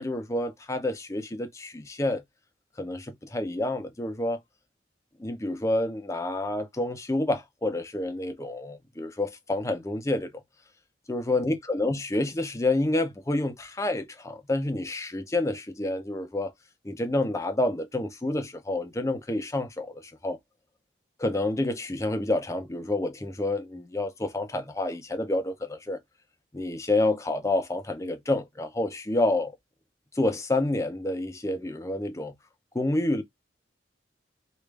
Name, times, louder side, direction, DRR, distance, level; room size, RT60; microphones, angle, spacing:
voice 1, 0.0-2.2 2.8-4.4 5.2-10.3 11.1-16.5 16.8-20.4 21.2-26.0 26.5-29.5 30.1-32.3 32.7-33.2, left 2 dB, 15° left, 0.6 m, -28 dB
3.3 x 2.4 x 3.2 m
head